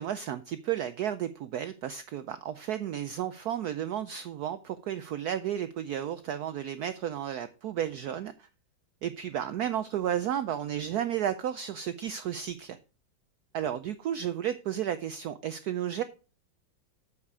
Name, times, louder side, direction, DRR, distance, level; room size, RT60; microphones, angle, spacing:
voice 1, 0.0-8.5 9.0-12.8 13.5-16.0, right 10 dB, 85° right, 0.8 m, -33 dB
8.6 x 6.6 x 4.7 m
omnidirectional pair, 2.2 m